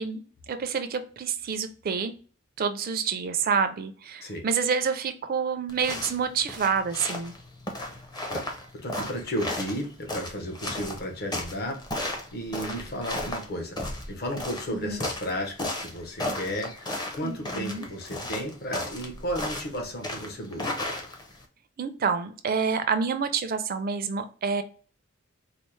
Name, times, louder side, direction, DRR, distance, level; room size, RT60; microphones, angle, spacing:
voice 1, 0.0-2.1 2.6-7.3 14.7-15.1 17.2-17.9 21.8-24.6, right 6 dB, 45° right, 9 dB, 0.4 m, -28 dB
sound 1, 5.7-21.4, left 1 dB, 20° left, 0.6 m, -35 dB
voice 2, 8.8-13.8 14.1-20.9, equal, 50° left, 2 dB, 0.8 m, -34 dB
4.1 x 2.0 x 3.1 m, 0.41 s
head